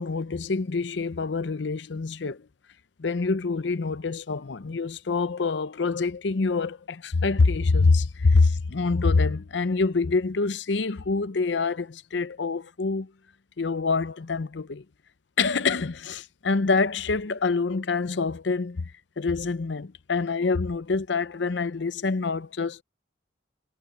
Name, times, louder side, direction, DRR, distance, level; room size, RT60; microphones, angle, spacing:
voice 1, 0.0-2.4 3.0-13.1 13.6-14.8 15.4-18.9 19.2-22.8, left 4 dB, 70° left, 0.6 m, -25 dB
head